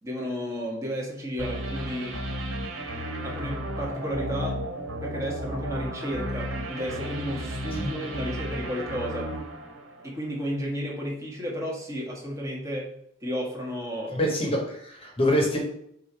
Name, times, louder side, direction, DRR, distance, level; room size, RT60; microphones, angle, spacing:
voice 1, 0.0-2.2 3.2-4.6 5.0-9.3 10.0-12.9 13.2-14.2, equal, 15° right, -2 dB, 1.5 m, -32 dB
sound 1, 1.4-10.4, equal, 80° right, 1.5 m, -33 dB
voice 2, 14.1-15.6, equal, 30° left, 0 dB, 1.3 m, -25 dB
6.8 x 2.8 x 5.6 m, 0.72 s
head